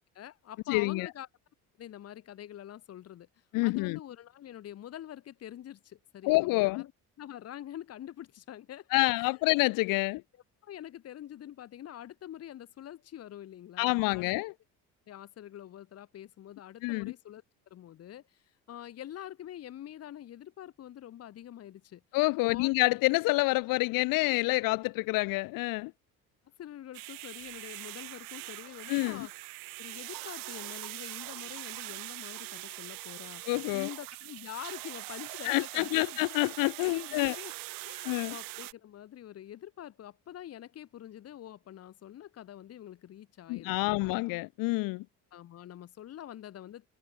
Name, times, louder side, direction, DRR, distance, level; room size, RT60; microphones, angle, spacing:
voice 1, 0.1-1.3 1.8-6.9 7.2-8.9 9.1-9.4 10.6-14.3 15.1-17.4 17.7-22.0 22.4-22.7 26.6-29.3 29.8-33.4 33.7-36.0 36.8-37.5 37.8-44.1 45.3-46.9, left 11 dB, 45° left, 8.0 m, -46 dB
voice 2, 0.7-1.1 3.5-4.0 6.2-6.8 8.9-10.2 13.8-14.5 16.8-17.1 22.1-25.9 28.9-29.3 33.5-33.9 35.4-37.3 38.0-38.3 43.5-45.0, left 23 dB, 85° left, 1.7 m, -27 dB
sound 1, 26.9-38.7, right 22 dB, 90° right, 6.9 m, -42 dB
cardioid pair, 155°, 33 cm